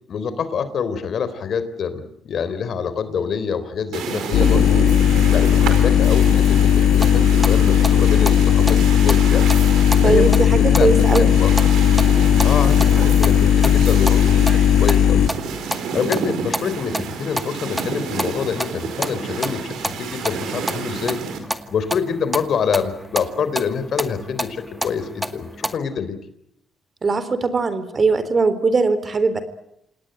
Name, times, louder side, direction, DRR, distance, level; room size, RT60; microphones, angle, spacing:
voice 1, 0.1-4.8 5.3-9.5 10.0-11.6 12.4-15.3 15.9-21.2 21.7-26.2, left 6 dB, 60° left, 12 dB, 3.6 m, -26 dB
sound 1, 3.9-21.4, right 6 dB, 80° right, 5.0 m, -30 dB
sound 2, 4.3-15.3, left 9 dB, 85° left, 1.7 m, -16 dB
sound 3, 7.0-25.8, equal, 5° right, 2.0 m, -31 dB
voice 2, 10.0-11.3 27.0-29.4, right 4 dB, 35° right, 13 dB, 3.8 m, -20 dB
28.0 x 18.5 x 9.0 m, 0.80 s
cardioid pair, 90°, 0 cm